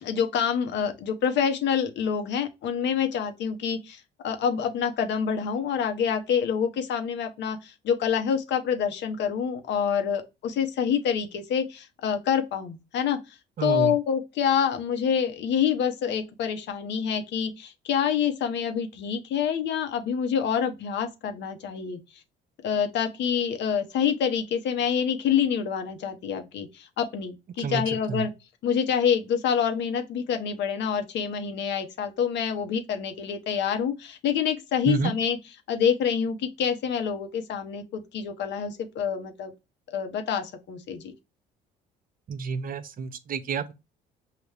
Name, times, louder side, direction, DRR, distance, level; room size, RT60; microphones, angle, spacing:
voice 1, 0.0-22.0 22.6-28.3 28.6-35.4 35.7-39.5 39.9-41.1, left 7 dB, 65° left, 1.0 m, -27 dB
voice 2, 13.6-14.0 27.6-27.8 28.1-28.3 34.9-35.2 42.3-43.7, right 6 dB, 45° right, 0.7 m, -29 dB
5.7 x 2.5 x 3.3 m
hypercardioid pair, 60°, 20 cm